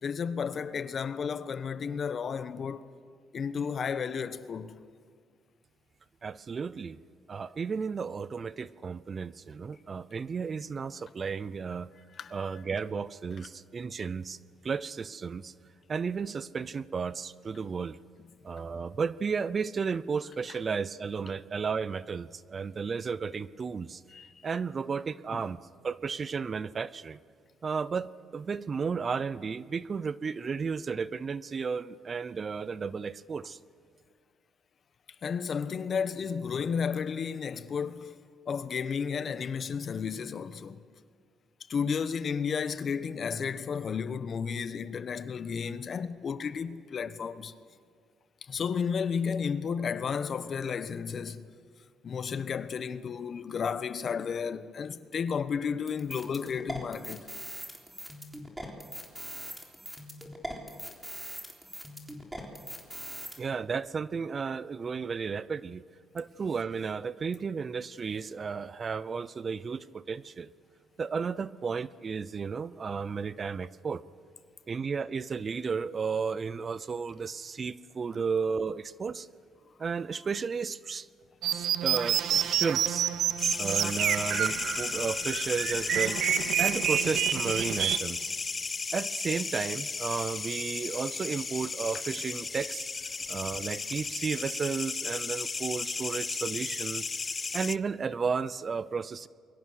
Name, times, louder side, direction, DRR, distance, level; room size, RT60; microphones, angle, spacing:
voice 1, 0.0-2.9 3.3-4.7 12.2-12.4 24.1-24.5 25.3-25.4 35.2-38.2 38.5-40.8 41.7-47.5 48.4-51.5 52.0-57.3, left 6 dB, 50° left, 1.1 m, -33 dB
voice 2, 6.2-7.0 7.3-11.9 12.3-14.4 14.6-15.5 15.9-18.0 18.4-24.0 24.4-27.2 27.6-33.6 63.4-65.8 66.1-70.5 71.0-74.0 74.7-79.3 79.8-81.1 81.5-83.1 83.6-86.2 86.6-88.3 88.9-92.9 93.3-97.2 97.5-99.3, right 5 dB, 40° right, 0.6 m, -33 dB
sound 1, 55.9-63.4, equal, 10° right, 3.7 m, -41 dB
sound 2, 81.4-88.0, right 10 dB, 75° right, 0.8 m, -28 dB
sound 3, 83.4-97.8, left 4 dB, 30° left, 0.5 m, -34 dB
28.0 x 23.0 x 6.5 m
cardioid pair, 90°, 0 cm